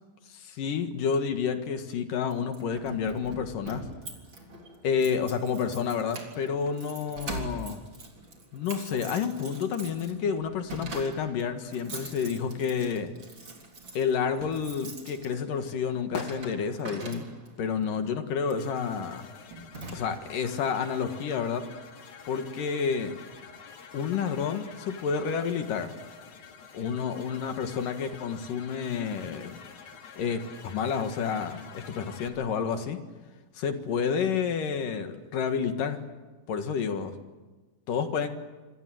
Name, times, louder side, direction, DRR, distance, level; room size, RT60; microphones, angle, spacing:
voice 1, 0.3-3.9 4.8-7.8 8.5-13.1 13.9-17.3 17.6-19.3 19.9-21.6 22.3-23.1 23.9-25.9 26.7-29.6 30.2-33.0 33.5-36.0 36.5-37.1 37.9-38.3, left 6 dB, 70° left, 7 dB, 3.2 m, -30 dB
Keys jangling, 2.3-17.7 18.4-18.7 19.1-19.3 19.5-20.4, right 2 dB, 35° right, 4.2 m, -43 dB
sound 1, 14.4-19.4 19.6-21.2 21.5-21.6, left 4 dB, 35° left, 2.5 m, -44 dB
sound 2, 18.6-32.3, left 6 dB, 90° left, 4.3 m, -48 dB
27.0 x 26.0 x 7.8 m, 1.2 s
omnidirectional pair, 4.0 m